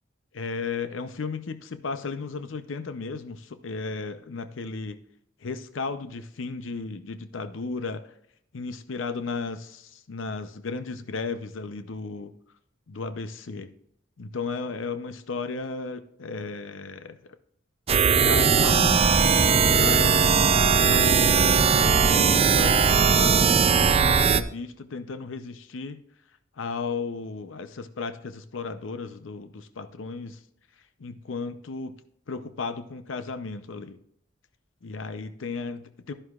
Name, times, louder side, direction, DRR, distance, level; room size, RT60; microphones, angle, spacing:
voice 1, 0.3-5.0 5.4-8.1 8.5-12.3 12.9-13.7 14.2-17.4 18.0-19.0 19.6-20.2 20.9-26.0 26.6-30.4 31.0-31.9 32.3-34.0 34.8-36.1, left 4 dB, 80° left, 11 dB, 0.6 m, -34 dB
sound 1, 17.9-24.4, right 6 dB, 30° right, 0.4 m, -19 dB
11.5 x 11.0 x 2.4 m, 0.72 s
head